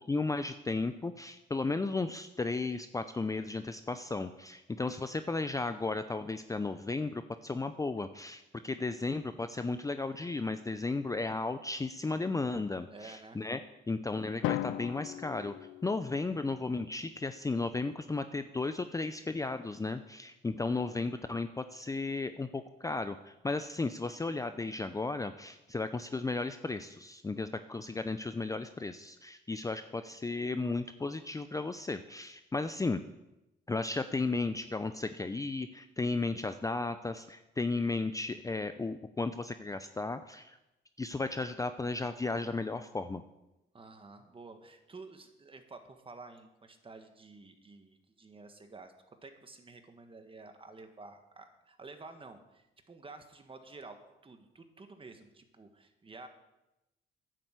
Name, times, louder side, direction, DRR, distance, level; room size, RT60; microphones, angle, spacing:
voice 1, 0.1-13.6 13.9-15.5 15.8-33.0 33.7-40.6 41.0-43.2, left 3 dB, 15° left, 10 dB, 0.5 m, -34 dB
voice 2, 12.9-13.4 43.7-54.0 54.2-56.3, right 3 dB, 25° right, 7 dB, 1.6 m, -51 dB
Drum, 14.4-16.5, left 14 dB, 85° left, 0.4 m, -37 dB
10.0 x 7.5 x 8.1 m, 0.95 s
cardioid pair, 90°, 20 cm